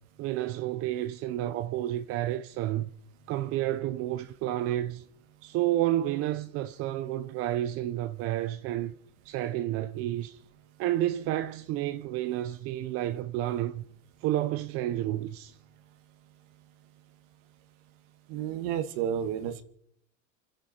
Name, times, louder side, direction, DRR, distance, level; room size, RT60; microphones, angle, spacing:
voice 1, 0.2-2.9 3.3-5.0 5.4-8.9 9.2-10.4 10.8-13.8 14.2-15.6, right 13 dB, 40° right, 0.7 m, -30 dB
voice 2, 18.3-19.6, right 9 dB, 55° right, 1.8 m, -31 dB
29.0 x 10.5 x 4.4 m
supercardioid pair, 135°, 37 cm